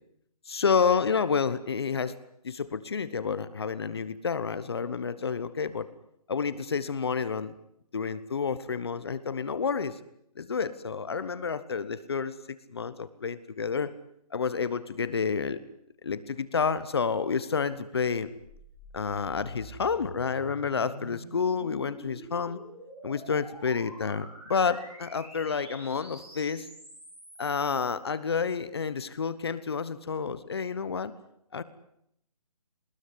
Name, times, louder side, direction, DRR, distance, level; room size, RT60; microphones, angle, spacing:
voice 1, 0.5-2.2 2.4-5.9 6.3-7.5 7.9-10.0 10.4-12.4 12.7-13.9 14.3-15.6 16.0-18.3 18.9-22.6 23.0-26.7 27.4-31.1 31.5-31.6, left 5 dB, 40° left, 15 dB, 1.2 m, -29 dB
sound 1, 18.0-27.9, equal, 5° right, 4.5 m, -47 dB
22.0 x 20.0 x 9.6 m, 0.75 s
hypercardioid pair, 175°, 20 cm